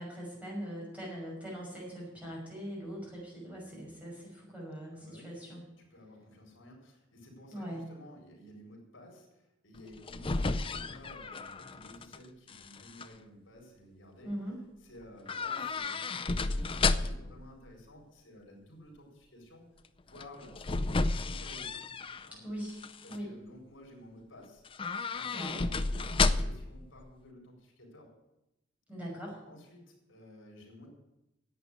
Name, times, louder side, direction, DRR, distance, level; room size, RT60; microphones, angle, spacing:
voice 1, 0.0-5.6 7.5-7.8 14.2-14.6 22.4-22.8 23.1-23.3 25.3-25.6 28.9-29.4, equal, 5° right, -4 dB, 5.9 m, -41 dB
voice 2, 4.9-5.5 5.8-14.3 14.8-19.6 20.0-20.8 21.2-21.9 22.2-22.4 23.0-24.6 25.1-28.1 29.5-30.9, left 1 dB, 75° left, 0 dB, 4.2 m, -53 dB
sound 1, 9.8-12.2 12.5-13.1 15.3-17.4 20.1-22.3 22.7-23.2 24.6-26.7 27.0-27.1, left 3 dB, 25° left, 0.5 m, -32 dB
11.0 x 8.4 x 9.5 m, 0.91 s
head